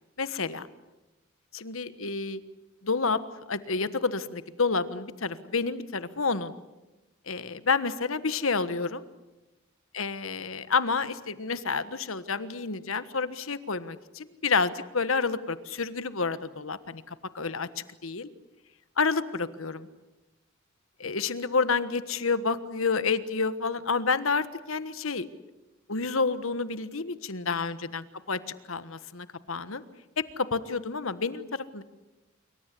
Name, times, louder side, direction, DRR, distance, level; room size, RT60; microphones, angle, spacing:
voice 1, 0.2-0.7 1.5-2.4 2.8-3.2 3.5-6.5 7.3-9.0 9.9-17.7 18.0-18.3 19.0-19.9 21.0-25.3 25.9-28.4 28.7-29.8 30.4-31.8, left 4 dB, 80° left, 14 dB, 1.4 m, -29 dB
26.5 x 24.0 x 8.4 m, 1.1 s
head